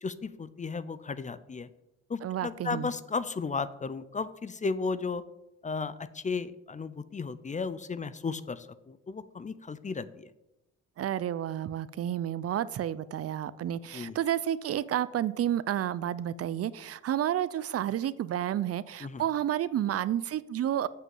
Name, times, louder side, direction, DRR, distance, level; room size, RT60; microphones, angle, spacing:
voice 1, 0.0-1.7 2.1-5.2 5.6-10.3 13.9-14.2 19.0-19.2, left 4 dB, 25° left, 15 dB, 0.5 m, -34 dB
voice 2, 2.2-2.9 11.0-20.9, right 11 dB, 50° right, 17 dB, 0.5 m, -30 dB
7.7 x 6.3 x 7.8 m, 0.94 s
cardioid pair, 90°, 30 cm